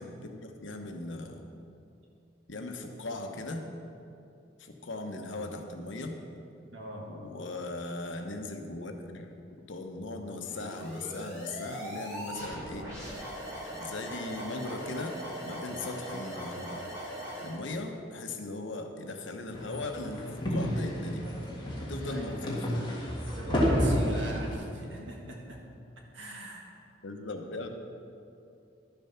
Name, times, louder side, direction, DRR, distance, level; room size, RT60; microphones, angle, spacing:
voice 1, 0.0-1.4 2.5-3.7 4.6-6.2 7.1-9.3 9.7-12.9 13.8-15.2 15.5-16.8 17.4-21.3 21.8-22.8 27.0-27.7, left 2 dB, 80° left, 4 dB, 1.0 m, -38 dB
voice 2, 6.7-7.1 22.0-22.4 23.4-25.6 26.1-26.7, right 1 dB, 80° right, 0 dB, 1.8 m, -42 dB
sound 1, 10.4-17.6, equal, 15° right, 2.9 m, -40 dB
sound 2, 19.5-24.5, equal, 25° left, 1.7 m, -30 dB
11.5 x 7.0 x 5.7 m, 2.6 s
head